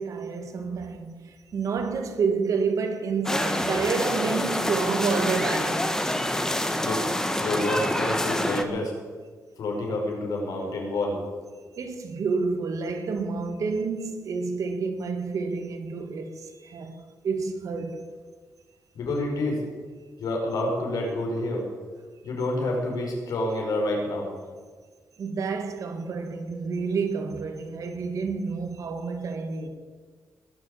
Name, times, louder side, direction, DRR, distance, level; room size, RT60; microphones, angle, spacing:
voice 1, 0.0-5.9 11.7-18.1 25.2-29.7, right 4 dB, 65° right, 2.1 m, -29 dB
sound 1, 3.2-8.6, left 1 dB, 10° left, 1.4 m, -27 dB
voice 2, 7.4-8.9 9.6-11.2 18.9-19.6 20.2-21.6 22.2-24.3, left 2 dB, 85° left, 5.2 m, -28 dB
20.5 x 7.7 x 8.6 m
wide cardioid pair, 125°, 6 cm